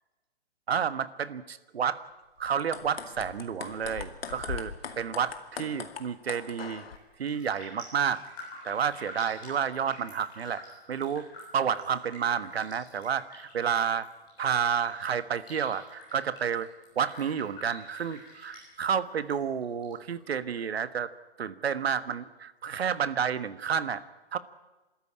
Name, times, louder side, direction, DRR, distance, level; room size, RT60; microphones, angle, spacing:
voice 1, 0.7-2.0 2.4-6.8 7.2-8.2 8.6-10.6 10.9-11.3 11.5-14.1 14.4-16.7 16.9-21.1 21.4-24.0 24.3-24.4, right 7 dB, 75° right, 13 dB, 1.5 m, -30 dB
sound 1, 2.5-7.0, left 7 dB, 65° left, 2.3 m, -40 dB
Raindrop, 6.9-7.0 7.3-19.3 19.6-20.6 21.0-21.1, left 1 dB, 15° left, 7.5 m, -48 dB
27.0 x 13.5 x 9.9 m, 1.1 s
hypercardioid pair, 170°, 32 cm